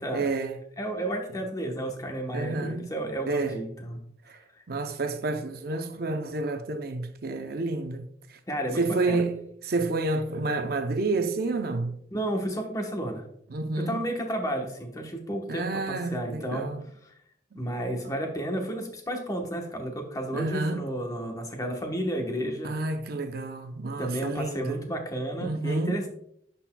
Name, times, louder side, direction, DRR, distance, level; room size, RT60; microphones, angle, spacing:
voice 1, 0.1-0.6 2.3-2.9 3.3-3.6 4.3-4.4 4.7-8.4 8.8-12.0 13.5-14.1 15.5-16.8 17.5-17.6 20.3-20.9 22.6-24.8 25.4-26.0, right 3 dB, 60° right, 0.6 m, -29 dB
voice 2, 0.8-4.0 8.5-9.2 12.1-13.2 13.8-16.7 17.0-17.1 17.5-22.8 24.0-26.1, right 1 dB, 20° left, 1.0 m, -32 dB
11.5 x 4.2 x 2.2 m
head